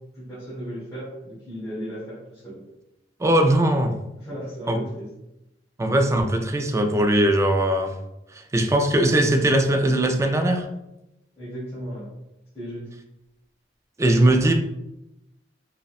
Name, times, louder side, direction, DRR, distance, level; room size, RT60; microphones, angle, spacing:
voice 1, 0.1-2.6 4.1-5.1 11.3-12.1 12.5-13.0, equal, 20° left, -13 dB, 1.5 m, -35 dB
voice 2, 3.2-3.9 4.7-4.8 5.8-7.9 8.5-10.6 14.0-14.5, right 1 dB, 15° right, 4 dB, 0.3 m, -20 dB
5.2 x 2.1 x 2.3 m, 0.91 s
head